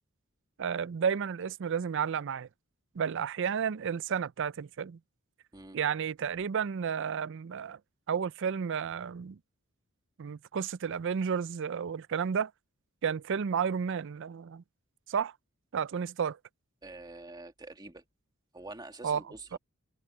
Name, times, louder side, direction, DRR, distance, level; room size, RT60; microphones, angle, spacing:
voice 1, 0.6-2.5 3.0-5.0 5.7-7.8 8.1-9.4 10.2-12.5 13.0-14.6 15.1-15.3 15.7-16.4 19.0-19.2 19.5-19.6, right 7 dB, 60° right, 0.4 m, -32 dB
voice 2, 16.8-18.0 18.5-19.6, right 2 dB, 20° right, 2.1 m, -46 dB
head